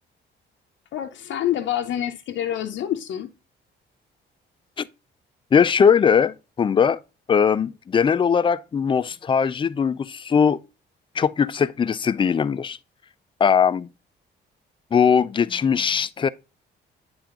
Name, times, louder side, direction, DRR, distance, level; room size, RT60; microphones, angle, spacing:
voice 1, 0.9-3.3, left 11 dB, 70° left, 0.6 m, -27 dB
voice 2, 5.5-7.0 7.3-10.6 11.2-12.8 13.4-13.9 14.9-16.3, left 7 dB, 25° left, 0.4 m, -20 dB
8.8 x 3.4 x 3.7 m
cardioid pair, 90°, 20 cm